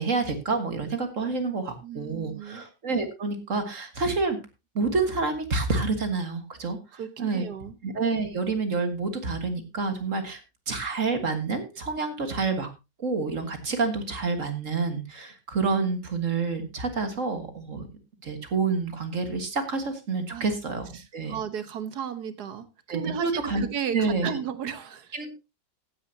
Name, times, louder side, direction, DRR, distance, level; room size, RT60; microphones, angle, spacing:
voice 1, 0.0-4.4 4.8-7.4 7.8-10.4 10.7-12.7 13.0-17.9 18.2-21.4 22.9-23.6 23.9-24.4 25.1-25.3, right 4 dB, 45° right, 7 dB, 1.9 m, -28 dB
voice 2, 1.8-2.6 6.9-7.8 20.3-20.5 20.9-25.2, right 8 dB, 65° right, 12 dB, 1.6 m, -34 dB
16.0 x 9.7 x 2.8 m, 0.26 s
omnidirectional pair, 1.9 m